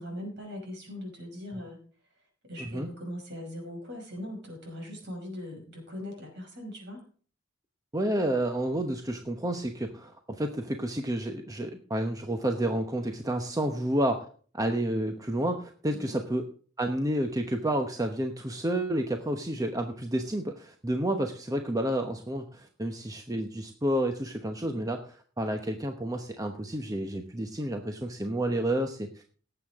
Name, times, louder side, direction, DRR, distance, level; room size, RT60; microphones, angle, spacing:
voice 1, 0.0-1.8 2.4-7.0 15.9-16.2, left 1 dB, 55° right, 1 dB, 5.8 m, -40 dB
voice 2, 7.9-14.2 14.5-16.5 16.8-29.2, right 1 dB, 15° right, 5 dB, 0.9 m, -30 dB
18.5 x 7.9 x 3.6 m, 0.42 s
head